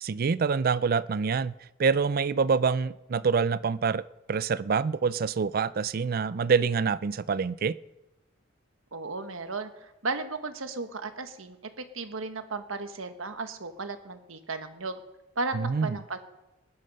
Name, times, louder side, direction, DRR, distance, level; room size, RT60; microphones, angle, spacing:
voice 1, 0.0-1.5 1.8-7.8 15.5-16.0, right 5 dB, 45° right, 17 dB, 0.4 m, -26 dB
voice 2, 8.9-15.0 15.4-16.2, right 3 dB, 85° right, 8 dB, 1.4 m, -35 dB
19.5 x 11.0 x 5.4 m, 0.99 s
head